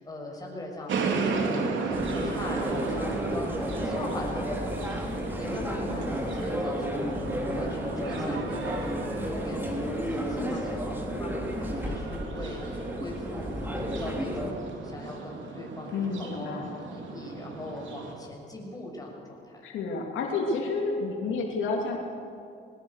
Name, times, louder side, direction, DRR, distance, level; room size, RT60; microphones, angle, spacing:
voice 1, 0.0-5.0 5.3-13.6 14.0-16.5 16.9-19.6, left 1 dB, 20° left, -1 dB, 6.3 m, -41 dB
sound 1, 0.9-18.2, right 4 dB, 75° right, 3.4 m, -35 dB
sound 2, 1.9-14.5, equal, 10° right, 3.5 m, -32 dB
voice 2, 15.9-16.7 19.6-22.0, left 3 dB, 80° left, 0 dB, 3.0 m, -30 dB
21.0 x 19.5 x 6.7 m, 2.4 s
cardioid pair, 90°, 20 cm